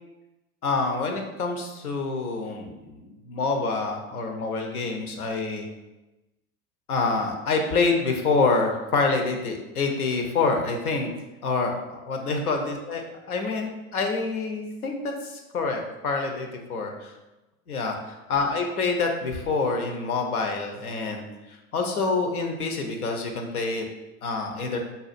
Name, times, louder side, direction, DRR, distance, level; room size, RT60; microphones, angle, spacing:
voice 1, 0.6-5.7 6.9-11.1 11.4-17.1 17.7-23.8 24.2-24.8, left 4 dB, 85° left, 3 dB, 0.7 m, -27 dB
5.2 x 2.4 x 2.5 m, 1.0 s
hypercardioid pair, 80°, 43 cm